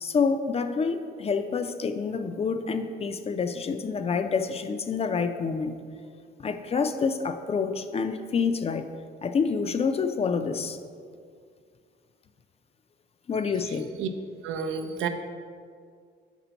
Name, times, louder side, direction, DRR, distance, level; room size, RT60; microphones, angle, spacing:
voice 1, 0.0-5.8 6.4-8.9 9.2-10.8 13.3-13.9, left 5 dB, 30° left, 8 dB, 0.4 m, -27 dB
voice 2, 13.7-14.1 14.4-15.1, right 7 dB, 85° right, 6 dB, 0.5 m, -31 dB
5.9 x 4.5 x 3.9 m, 2.2 s
cardioid pair, 90°, 20 cm